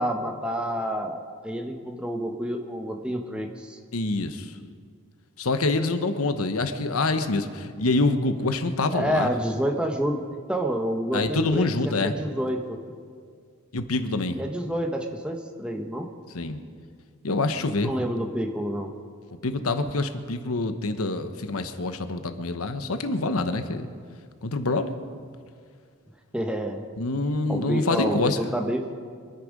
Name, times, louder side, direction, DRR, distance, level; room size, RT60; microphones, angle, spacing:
voice 1, 0.0-3.8 8.9-10.2 10.5-12.8 14.3-16.1 17.8-18.9 26.3-26.8 27.5-28.9, equal, 5° right, 3 dB, 1.1 m, -28 dB
voice 2, 3.9-4.5 5.4-9.3 11.1-12.2 13.7-14.4 16.3-16.6 17.2-17.9 19.4-23.9 24.4-24.9 27.0-28.4, left 2 dB, 80° left, 9 dB, 1.0 m, -26 dB
25.5 x 10.0 x 5.2 m, 2.1 s
head